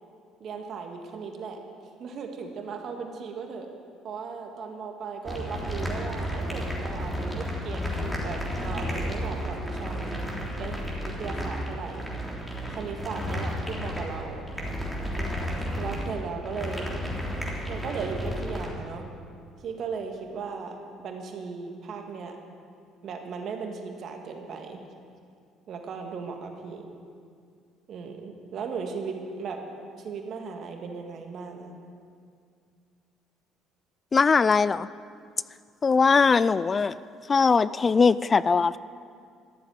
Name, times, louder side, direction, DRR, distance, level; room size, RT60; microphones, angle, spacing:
voice 1, 0.4-1.6 2.0-3.7 4.0-10.2 10.6-12.1 12.7-14.4 15.2-16.9 17.7-19.1 19.6-22.4 23.0-24.8 25.7-26.9 27.9-29.6 30.0-31.7, right 5 dB, 60° right, 3 dB, 1.9 m, -37 dB
sound 1, 5.2-18.7, equal, 5° left, 3.4 m, -32 dB
voice 2, 34.1-34.9 35.8-37.0 37.3-38.8, left 5 dB, 35° left, 18 dB, 0.3 m, -20 dB
13.5 x 7.3 x 9.3 m, 2.3 s
supercardioid pair, 70°, 0 cm